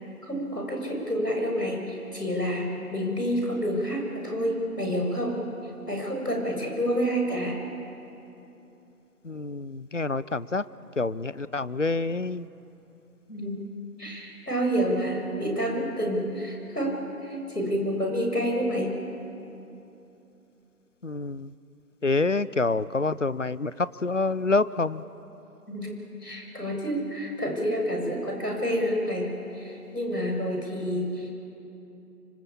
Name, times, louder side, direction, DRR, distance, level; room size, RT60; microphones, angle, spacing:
voice 1, 0.2-5.4 5.9-7.6 13.3-13.6 14.0-17.0 17.2-18.9 25.7-25.9 26.2-29.3 29.5-31.3, equal, 80° left, 1 dB, 7.5 m, -28 dB
voice 2, 9.2-10.7 11.0-12.5 21.0-21.5 22.0-25.0, left 3 dB, 50° left, 17 dB, 0.7 m, -27 dB
25.5 x 22.5 x 8.6 m, 2.9 s
figure-of-eight pair, 165°, 46 cm